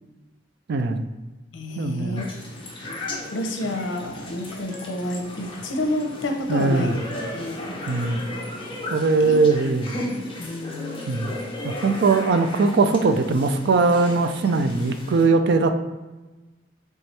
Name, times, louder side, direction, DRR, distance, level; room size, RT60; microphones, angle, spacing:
voice 1, 0.7-1.0 1.8-2.2 6.5-7.0 7.9-8.2 8.9-10.0 11.1-11.3 11.6-15.8, right 3 dB, 65° right, 8 dB, 0.4 m, -20 dB
voice 2, 1.5-2.3 2.9-7.0 7.3-7.8 9.2-9.4 10.4-11.1, left 1 dB, 80° left, 3 dB, 0.7 m, -29 dB
sound 1, 1.7-10.8, left 1 dB, 55° left, 1.1 m, -45 dB
sound 2, 2.2-15.2, left 1 dB, 30° left, 0.9 m, -36 dB
4.3 x 3.4 x 3.2 m, 1.2 s
head